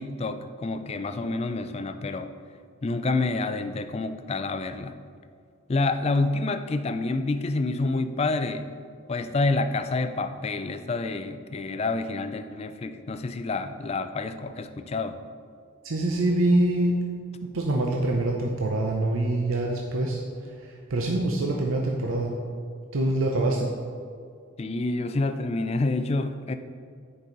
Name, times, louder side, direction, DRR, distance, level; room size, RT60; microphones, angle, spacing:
voice 1, 0.0-2.3 2.8-5.0 5.7-8.7 9.1-15.2 24.6-26.5, left 3 dB, 30° left, 9 dB, 0.3 m, -28 dB
voice 2, 15.8-17.0 17.4-22.4 22.9-23.7, right 1 dB, 75° right, 0 dB, 0.7 m, -25 dB
9.9 x 5.4 x 3.9 m, 2.2 s
head